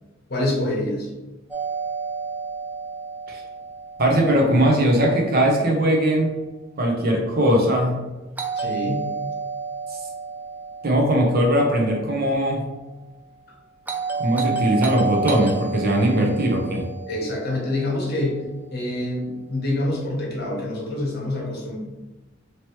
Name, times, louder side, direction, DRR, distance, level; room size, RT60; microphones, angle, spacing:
voice 1, 0.3-1.1 8.6-9.0 17.1-18.4 18.7-21.8, left 1 dB, 50° left, -1 dB, 0.9 m, -26 dB
Doorbell, 1.5-5.5 8.4-12.6 13.9-18.3, right 4 dB, 10° right, 0.3 m, -31 dB
voice 2, 4.0-6.3 6.8-8.0 10.8-12.6 14.2-16.9, right 1 dB, 50° right, 1 dB, 0.7 m, -20 dB
3.0 x 3.0 x 3.1 m, 1.1 s
head